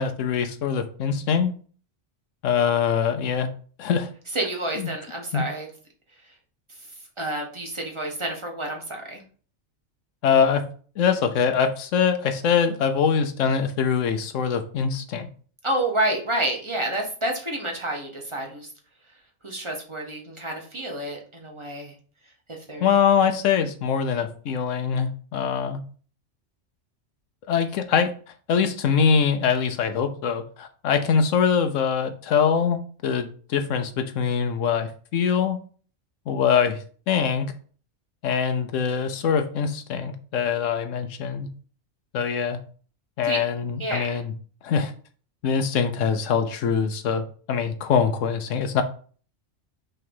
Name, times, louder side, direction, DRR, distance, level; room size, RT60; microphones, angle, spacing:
voice 1, 0.0-1.5 2.4-3.5 3.8-4.1 4.8-4.9 5.3-5.4 10.2-10.7 11.0-15.3 22.8-25.8 27.5-28.1 28.5-35.6 36.3-37.5 38.2-41.5 42.1-42.6 43.2-44.3 44.6-44.9 45.4-48.8, left 7 dB, 85° left, 1.0 m, -23 dB
voice 2, 4.3-5.7 7.2-9.2 15.6-18.7 19.4-21.9 22.5-22.9 43.2-43.4 43.8-44.0, right 1 dB, 25° right, 1.3 m, -29 dB
5.6 x 3.3 x 5.4 m
omnidirectional pair, 1.3 m